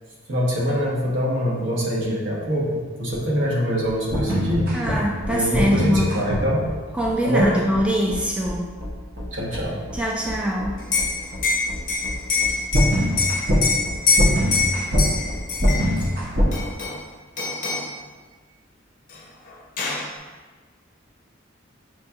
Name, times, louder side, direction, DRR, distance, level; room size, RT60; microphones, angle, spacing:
voice 1, 0.3-4.8 5.3-6.7 7.2-7.5 9.3-9.8, equal, 75° right, -4 dB, 1.0 m, -24 dB
sound 1, 3.8-16.5, equal, 50° right, 0.7 m, -23 dB
voice 2, 4.7-6.2 6.9-8.7 9.9-10.8, equal, 5° right, -3 dB, 0.3 m, -23 dB
Liquid, 10.8-16.1 16.5-17.1 17.4-17.9 19.1-19.2 19.5-20.1, left 4 dB, 45° left, 0.6 m, -24 dB
6.1 x 2.3 x 2.7 m, 1.4 s
head